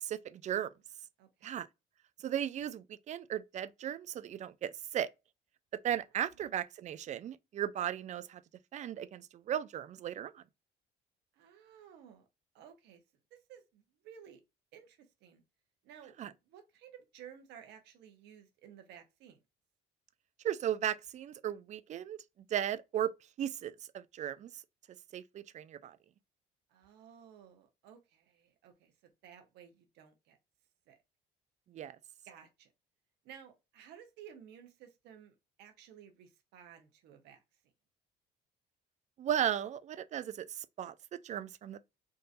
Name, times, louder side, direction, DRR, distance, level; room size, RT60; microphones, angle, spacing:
voice 1, 0.0-0.7 1.4-1.7 2.2-5.1 5.8-8.4 8.7-10.4 16.2-16.3 20.4-22.2 22.5-23.1 23.4-24.6 25.1-26.0 31.7-32.0 39.2-41.8, right 10 dB, 45° right, 0.4 m, -36 dB
voice 2, 1.2-1.6 11.3-12.3 12.5-13.0 13.3-14.4 14.7-15.4 15.8-19.4 26.7-30.4 30.9-31.0 32.3-32.7 33.2-37.4, right 8 dB, 85° right, 1.0 m, -55 dB
3.8 x 2.6 x 2.5 m
cardioid pair, 110°, 17 cm